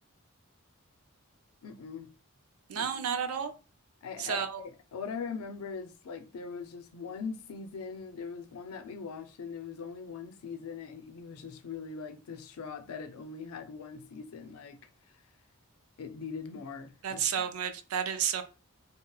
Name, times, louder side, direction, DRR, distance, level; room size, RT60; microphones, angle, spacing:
voice 1, 1.6-2.1 2.7-3.0 4.0-14.8 16.0-17.5, left 5 dB, 80° left, 0.4 m, -41 dB
voice 2, 2.7-3.5 4.2-4.6 17.0-18.4, right 8 dB, 80° right, 0.4 m, -31 dB
3.0 x 2.7 x 2.3 m
head